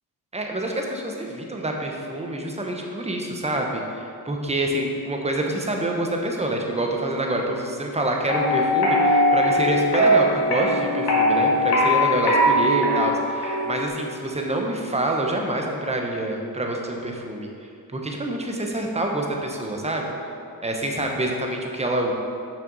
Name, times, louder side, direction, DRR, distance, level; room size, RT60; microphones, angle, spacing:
voice 1, 0.3-17.5 17.9-20.1 20.6-22.1, right 1 dB, 15° right, 1 dB, 0.9 m, -26 dB
sound 1, 8.3-13.9, left 1 dB, 80° left, 1.8 m, -20 dB
6.7 x 5.9 x 4.0 m, 2.5 s
cardioid pair, 85°, 38 cm